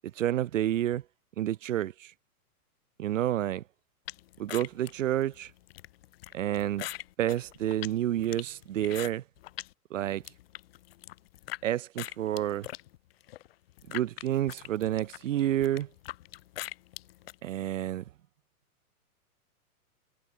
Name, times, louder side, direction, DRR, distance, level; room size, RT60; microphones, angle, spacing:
voice 1, 0.2-1.0 1.4-2.1 3.0-3.6 4.4-5.5 6.3-6.9 7.2-9.2 9.9-10.2 11.6-12.7 13.9-15.9 17.4-18.0, right 12 dB, 55° right, 1.6 m, -29 dB
sound 1, 4.1-9.7 10.1-11.6 12.0-17.4, left 15 dB, 40° left, 2.3 m, -42 dB
hypercardioid pair, 170°, 45 cm